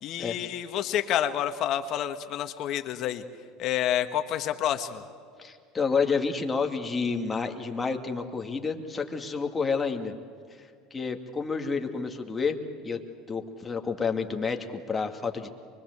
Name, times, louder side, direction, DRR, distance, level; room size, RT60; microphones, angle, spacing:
voice 1, 0.0-3.2 3.6-5.0, left 11 dB, 55° left, 9 dB, 1.6 m, -29 dB
voice 2, 5.4-10.1 10.6-12.6 12.8-13.0 13.3-15.5, left 5 dB, 20° left, 4 dB, 2.4 m, -29 dB
24.5 x 22.5 x 8.1 m, 2.2 s
hypercardioid pair, 85°, 0 cm